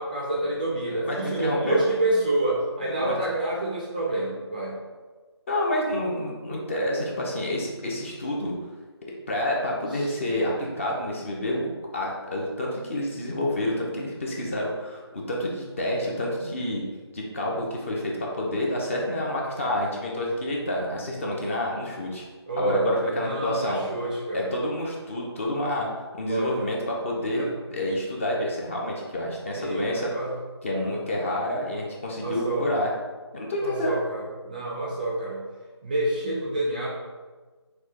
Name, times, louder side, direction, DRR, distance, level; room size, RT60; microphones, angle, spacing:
voice 1, 0.0-4.8 9.9-10.1 22.5-24.6 26.3-26.6 27.3-27.8 29.5-30.4 30.8-30.9 32.2-32.7 33.6-35.4 35.8-36.9, right 2 dB, 20° right, -4 dB, 0.4 m, -28 dB
voice 2, 0.9-1.8 3.0-3.2 5.5-8.5 9.3-16.8 17.1-22.2 22.6-23.8 24.3-25.9 26.1-27.5 27.7-30.1 30.6-32.9 33.3-34.0, left 1 dB, 30° left, -2 dB, 0.6 m, -28 dB
6.1 x 2.2 x 2.9 m, 1.3 s
figure-of-eight pair, 160°, 15 cm